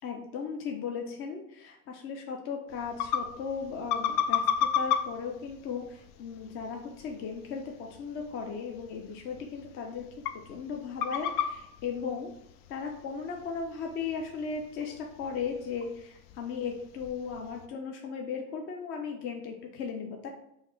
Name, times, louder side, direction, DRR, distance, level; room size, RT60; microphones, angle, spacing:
voice 1, 0.0-10.1 10.5-12.3 12.7-20.3, left 6 dB, 30° left, 2 dB, 0.4 m, -36 dB
sound 1, 2.7-17.7, left 8 dB, 80° left, 0.6 m, -36 dB
5.6 x 2.0 x 4.4 m, 0.81 s
supercardioid pair, 145°, 43 cm